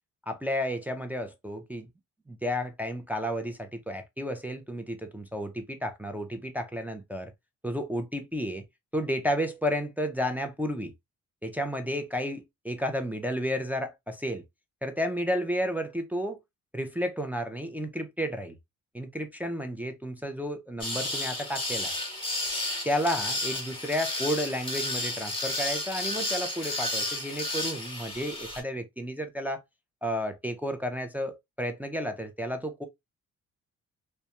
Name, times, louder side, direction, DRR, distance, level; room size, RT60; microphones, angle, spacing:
voice 1, 0.3-1.9 2.3-7.3 7.6-8.6 8.9-10.9 11.4-14.4 14.8-16.4 16.7-18.6 18.9-21.9 22.9-29.6 30.0-32.9, equal, 5° right, 0.4 m, -32 dB
sound 1, 20.8-28.6, left 1 dB, 20° left, 1.0 m, -32 dB
2.2 x 2.1 x 2.8 m
cardioid pair, 90°, 30 cm